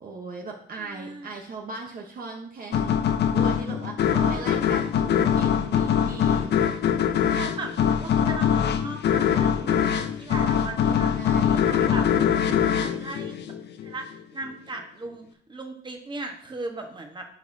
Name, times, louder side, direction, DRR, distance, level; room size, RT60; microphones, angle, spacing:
voice 1, 0.0-6.5 10.9-11.8, right 3 dB, 45° right, 1 dB, 1.0 m, -38 dB
voice 2, 0.8-1.3 4.1-4.7 7.3-7.7 8.0-12.1 12.6-13.3 13.8-14.1 14.3-17.2, right 2 dB, 25° right, 3 dB, 1.3 m, -37 dB
sound 1, 2.7-14.0, left 8 dB, 60° left, 0.6 m, -23 dB
10.0 x 4.8 x 2.7 m, 0.63 s
cardioid pair, 90°, 20 cm